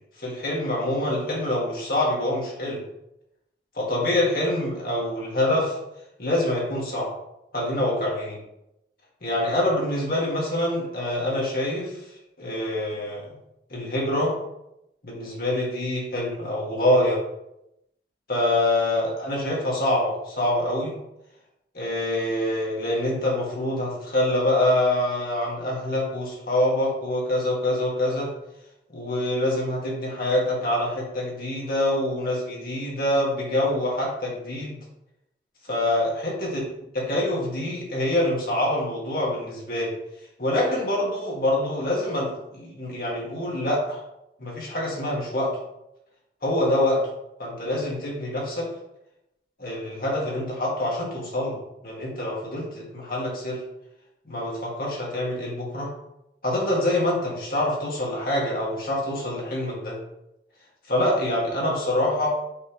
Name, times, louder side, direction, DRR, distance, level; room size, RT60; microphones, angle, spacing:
voice 1, 0.2-2.8 3.7-5.8 6.2-7.1 7.5-8.4 9.2-12.0 12.4-13.3 13.7-14.4 15.0-17.2 18.3-20.9 21.7-28.3 28.9-34.8 35.7-36.6 36.9-39.9 40.4-44.0 44.4-45.5 46.4-47.0 47.4-48.7 49.6-53.6 54.3-55.9 56.4-60.0 60.9-62.3, left 1 dB, 55° left, -4 dB, 2.0 m, -25 dB
5.4 x 3.4 x 5.2 m, 0.86 s
head